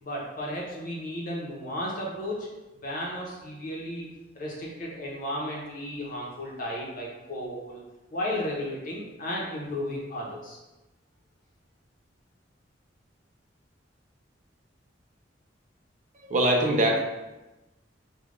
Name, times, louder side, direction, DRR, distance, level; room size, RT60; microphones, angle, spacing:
voice 1, 0.0-2.5 2.8-4.1 4.3-7.8 8.1-10.6, left 1 dB, 50° left, -3 dB, 0.8 m, -34 dB
voice 2, 16.2-17.0, right 1 dB, 40° right, 0 dB, 0.6 m, -22 dB
3.3 x 2.3 x 3.7 m, 1.0 s
head